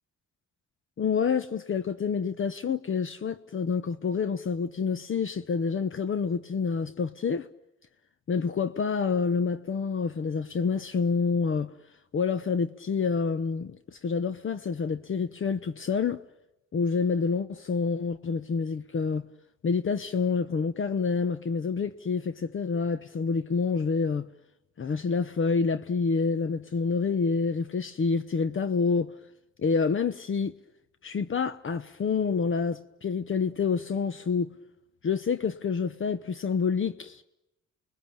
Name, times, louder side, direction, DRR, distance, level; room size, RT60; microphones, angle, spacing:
voice 1, 1.0-7.5 8.3-11.7 12.1-16.2 16.7-19.3 19.6-24.3 24.8-29.1 29.6-30.5 31.0-34.5 35.0-37.2, left 5 dB, 40° left, 1.1 m, -28 dB
29.5 x 21.0 x 8.9 m
cardioid pair, 90°, 30 cm